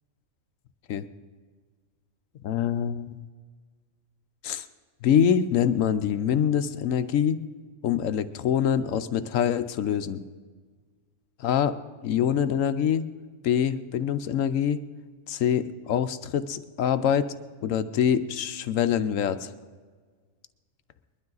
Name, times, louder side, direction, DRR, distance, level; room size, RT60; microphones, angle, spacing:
voice 1, 2.4-3.2 4.4-4.6 5.0-7.4 7.8-10.2 11.4-11.7 12.0-13.0 13.4-14.8 15.3-17.3 17.6-19.5, left 8 dB, 75° left, 12 dB, 1.1 m, -25 dB
21.5 x 12.0 x 3.9 m, 1.5 s
omnidirectional pair, 1.4 m